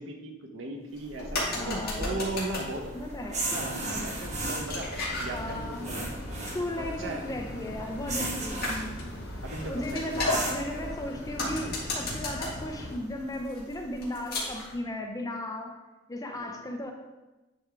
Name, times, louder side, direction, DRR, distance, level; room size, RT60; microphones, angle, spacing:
voice 1, 0.0-2.9 3.2-6.1 6.8-7.3 9.4-10.4 16.3-16.5, right 2 dB, 75° right, 2 dB, 0.9 m, -37 dB
sound 1, 0.9-14.8, left 2 dB, 50° left, 2.0 m, -37 dB
voice 2, 1.5-2.2 2.9-3.5 5.3-5.9 6.5-9.1 9.7-15.7 16.1-16.9, left 1 dB, 20° left, 2 dB, 0.6 m, -35 dB
sound 2, 1.7-10.9, right 2 dB, 35° right, 1.0 m, -37 dB
sound 3, 3.9-13.0, left 1 dB, 90° left, 1.3 m, -41 dB
9.7 x 3.5 x 3.4 m, 1.1 s
head